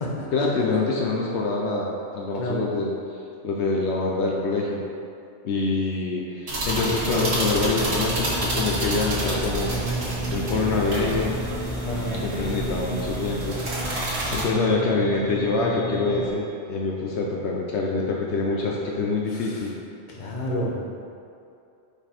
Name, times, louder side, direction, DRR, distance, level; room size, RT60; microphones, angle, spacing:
voice 1, 0.3-2.9 3.4-4.8 5.4-9.7 10.3-11.4 12.2-13.6 14.3-19.7, left 3 dB, 70° left, -2 dB, 0.9 m, -25 dB
sound 1, 6.5-14.4, right 1 dB, 65° right, 1.4 m, -29 dB
sound 2, 6.6-16.3, equal, 15° left, 0.8 m, -33 dB
voice 2, 11.9-12.2 19.3-19.6 20.1-20.7, equal, 45° left, -3 dB, 0.9 m, -30 dB
5.6 x 4.2 x 4.3 m, 2.6 s
omnidirectional pair, 1.2 m